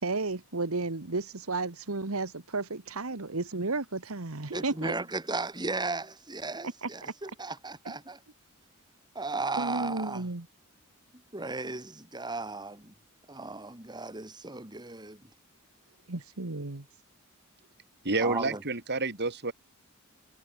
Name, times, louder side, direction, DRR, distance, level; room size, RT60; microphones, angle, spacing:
voice 1, 0.0-4.9 6.8-7.1 7.8-7.9 9.6-10.5 16.1-16.8, right 3 dB, 75° right, 1.6 m, -33 dB
voice 2, 4.5-8.2 9.1-10.3 11.3-12.9 13.3-15.3 18.2-18.6, right 3 dB, 20° right, 3.9 m, -35 dB
voice 3, 18.0-19.5, right 3 dB, 55° right, 4.9 m, -29 dB
head